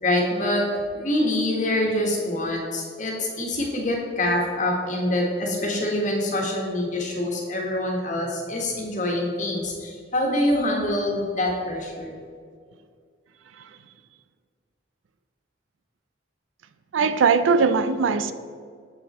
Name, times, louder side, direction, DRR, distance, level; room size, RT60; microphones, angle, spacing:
voice 1, 0.0-12.1, left 1 dB, 40° left, 1.4 m, -25 dB
voice 2, 16.9-18.3, right 5 dB, 90° right, 0.4 m, -20 dB
7.8 x 5.5 x 4.2 m
head